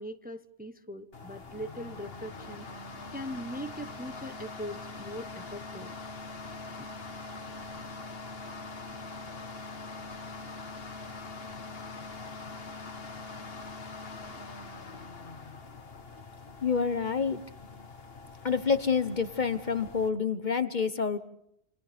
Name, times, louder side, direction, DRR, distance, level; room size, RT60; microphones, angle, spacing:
voice 1, 0.0-2.7 3.1-5.9 6.8-6.9, equal, 10° right, 8 dB, 0.9 m, -41 dB
sound 1, 1.1-20.1, left 3 dB, 60° left, 1.7 m, -43 dB
voice 2, 16.6-17.4 18.4-21.2, left 5 dB, 45° left, 11 dB, 1.1 m, -28 dB
29.5 x 28.0 x 3.5 m, 0.78 s
omnidirectional pair, 1.1 m